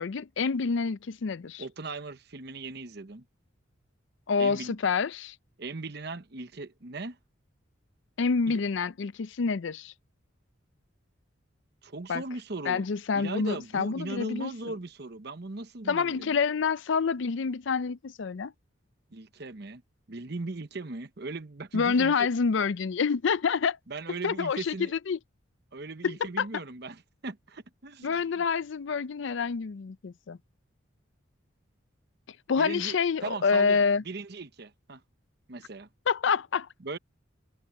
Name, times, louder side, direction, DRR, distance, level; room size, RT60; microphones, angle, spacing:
voice 1, 0.0-1.6 4.3-5.3 8.2-9.9 12.1-12.2 12.7-14.5 15.9-18.5 21.7-23.8 24.2-24.7 25.1-25.2 26.0-26.5 28.0-30.4 32.5-34.0 36.1-36.7, left 5 dB, 65° left, 0.5 m, -27 dB
voice 2, 1.6-3.2 4.4-4.8 5.6-7.2 8.5-8.6 11.8-12.9 13.1-16.3 19.1-19.8 20.1-22.3 23.9-24.9 25.7-28.4 32.6-33.0 33.2-35.0 35.5-35.9 36.8-37.0, right 3 dB, 55° right, 0.9 m, -38 dB
head